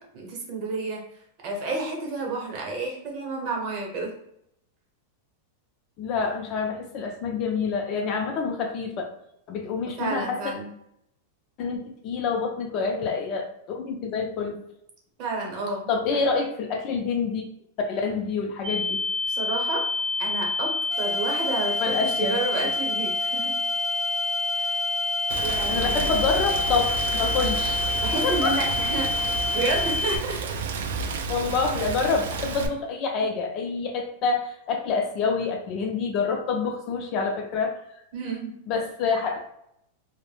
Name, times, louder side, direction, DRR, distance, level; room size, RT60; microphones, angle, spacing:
voice 1, 0.1-1.0 1.4-4.1 10.0-10.7 15.2-16.2 19.3-19.8 20.2-23.5 24.6-24.7 25.4-26.1 28.0-30.6 31.7-31.9 33.2-33.3 38.1-38.5, right 3 dB, 45° right, 0 dB, 0.8 m, -31 dB
voice 2, 6.0-9.1 9.5-10.4 11.6-14.6 15.9-17.4 17.8-19.0 21.8-22.7 25.7-27.8 28.2-28.6 31.3-37.8 38.7-39.4, left 5 dB, 40° left, 3 dB, 0.4 m, -27 dB
sound 1, 18.6-30.2, left 3 dB, 55° left, 0.9 m, -27 dB
sound 2, 20.9-29.9, right 4 dB, 10° right, 0.6 m, -36 dB
Rain, 25.3-32.7, right 4 dB, 80° right, 0.3 m, -31 dB
2.1 x 2.0 x 3.2 m, 0.76 s
supercardioid pair, 150°, 0 cm